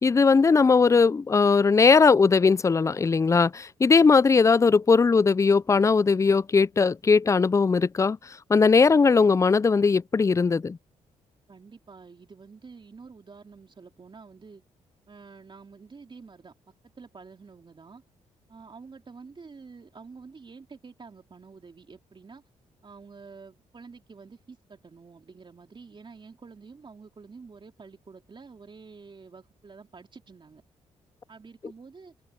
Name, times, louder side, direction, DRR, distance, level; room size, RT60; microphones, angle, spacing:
voice 1, 0.0-8.2 8.5-10.8, left 4 dB, 25° left, 0.4 m, -19 dB
voice 2, 11.5-14.6 15.1-16.5 17.0-18.0 18.5-22.4 22.8-30.6 31.3-32.1, right 4 dB, 40° right, 3.3 m, -48 dB
supercardioid pair, 65°, 13 cm